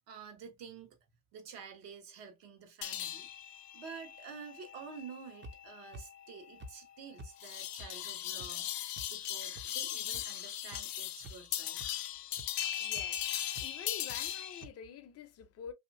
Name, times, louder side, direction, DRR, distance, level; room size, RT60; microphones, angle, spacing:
voice 1, 0.1-1.0 1.3-3.3 3.7-11.8, right 6 dB, 60° right, 1.2 m, -49 dB
sound 1, 2.8-14.6, left 12 dB, 85° left, 0.6 m, -39 dB
sound 2, 5.4-5.5 5.9-6.0 6.6-6.7 7.2-7.3 7.8-7.9 8.4-8.5 9.0-9.1 9.6-9.7 10.1-10.2 10.7-10.8 11.2-11.5 11.8-11.9 12.4-12.5 13.0-13.1 13.5-13.7 14.1-14.2 14.6-14.7, right 1 dB, 25° right, 0.6 m, -47 dB
voice 2, 12.8-13.2 13.6-15.7, left 7 dB, 35° left, 0.5 m, -47 dB
2.7 x 2.5 x 2.6 m
hypercardioid pair, 85°, 47 cm